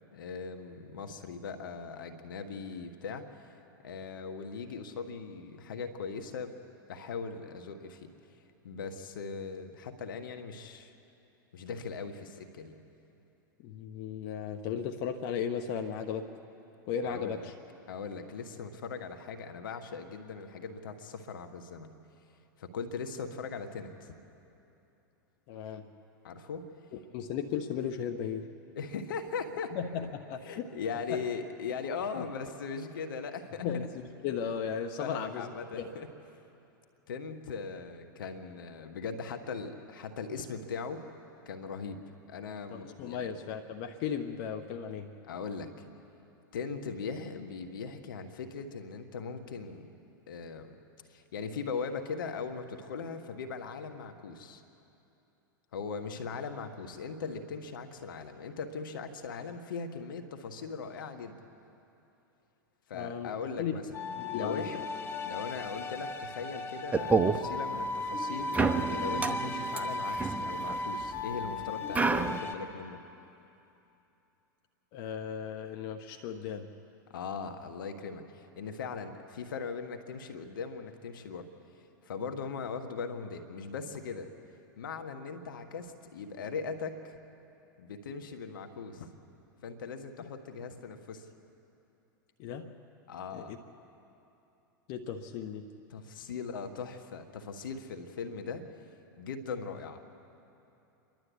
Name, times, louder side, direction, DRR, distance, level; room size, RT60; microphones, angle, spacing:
voice 1, 0.1-3.3 3.8-6.6 6.9-8.1 8.6-10.9 11.5-12.8 17.0-17.5 17.9-21.9 22.6-24.1 26.2-26.7 28.7-29.8 30.4-33.7 35.0-36.1 37.1-41.1 41.4-43.3 45.3-45.7 46.5-49.9 50.3-50.8 51.1-54.6 55.7-61.4 62.9-63.9 64.3-64.8 65.2-73.0 77.1-81.5 82.0-84.3 84.8-87.2 87.8-89.1 89.6-91.3 93.1-93.6 95.9-98.7 99.2-100.1, left 5 dB, 80° left, 6 dB, 1.5 m, -39 dB
voice 2, 13.6-16.3 16.9-17.5 25.5-25.9 27.1-28.5 29.7-30.7 31.1-31.2 32.2-32.3 33.6-35.5 35.8-35.9 42.7-45.1 62.9-63.3 63.6-63.7 64.2-64.8 74.9-76.7 90.2-90.3 92.4-92.7 93.3-93.6 94.9-95.7, left 7 dB, 55° left, 5 dB, 1.1 m, -36 dB
sound 1, 63.9-72.5, left 2 dB, 20° left, 1.6 m, -36 dB
sound 2, 66.9-67.4 68.5-71.2 71.9-72.4, right 4 dB, 15° right, 0.8 m, -29 dB
28.5 x 12.0 x 8.3 m, 2.9 s
hypercardioid pair, 105°, 11 cm